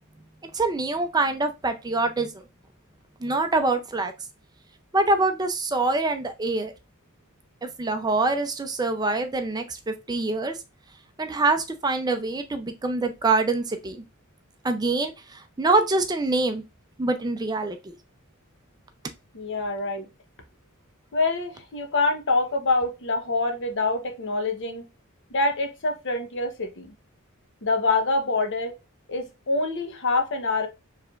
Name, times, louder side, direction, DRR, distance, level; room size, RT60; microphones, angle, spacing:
voice 1, 0.5-2.3 3.2-4.1 4.9-6.7 7.8-10.6 11.2-14.0 14.6-16.6 17.0-18.0, right 3 dB, 20° right, 0.5 m, -25 dB
voice 2, 19.3-20.0 21.1-24.8 25.3-26.9 27.6-28.7 29.1-30.7, left 3 dB, 55° left, 1.0 m, -25 dB
4.8 x 3.3 x 2.4 m
head